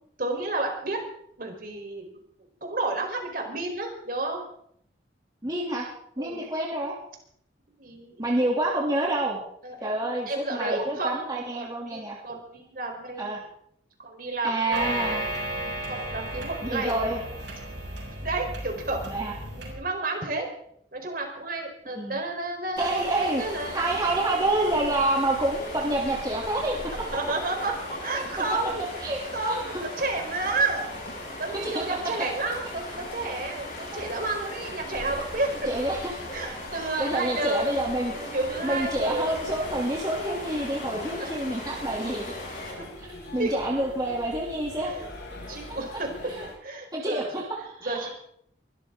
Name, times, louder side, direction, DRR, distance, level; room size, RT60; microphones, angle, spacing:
voice 1, 0.2-1.0 1.4-2.2 2.6-4.4 6.2-6.5 7.8-8.3 9.6-13.4 14.0-15.3 15.9-17.0 18.1-19.1 19.5-20.5 20.9-23.9 27.1-28.8 29.3-30.9 31.4-35.6 36.3-37.8 38.1-39.3 41.2-41.3 42.8-42.9 43.4-43.6 44.8-45.1 45.5-46.1 46.6-47.4 47.8-48.1, right 2 dB, 50° right, 2 dB, 4.2 m, -31 dB
voice 2, 5.4-5.9 6.2-7.0 8.2-9.4 9.8-12.2 13.2-13.4 14.4-15.2 16.6-17.2 19.1-19.3 21.9-22.2 22.8-23.4 23.7-26.8 28.1-28.2 29.0-29.8 31.6-32.3 35.7-36.1 37.0-38.1 38.6-42.3 43.0-43.1 43.3-44.9 45.7-45.8 46.4-46.5 46.9-48.1, right 1 dB, 20° right, -3 dB, 2.9 m, -28 dB
sound 1, 14.7-19.7, right 1 dB, 85° right, 6.9 m, -34 dB
sound 2, 22.8-42.7, left 1 dB, 50° left, 7.1 m, -38 dB
sound 3, 38.5-46.5, left 2 dB, 90° left, 5.8 m, -43 dB
23.5 x 13.5 x 3.8 m, 0.69 s
head